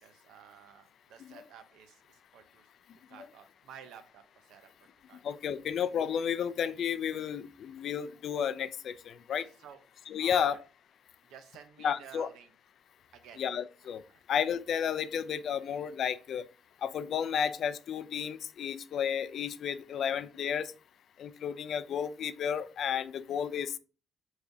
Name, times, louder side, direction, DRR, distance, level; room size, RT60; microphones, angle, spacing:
voice 1, 0.0-2.7 3.1-4.7 5.1-5.2 5.5-5.7 9.3-9.8 10.2-10.6 11.3-12.5 13.1-13.4 14.1-14.2 19.9-20.0, right 8 dB, 90° right, 0.6 m, -53 dB
voice 2, 5.2-9.5 10.1-10.6 11.8-12.3 13.4-14.0 14.3-16.5 16.8-20.7 21.2-23.8, left 8 dB, 65° left, 0.3 m, -32 dB
4.8 x 3.1 x 2.7 m
cardioid pair, 90°, 0 cm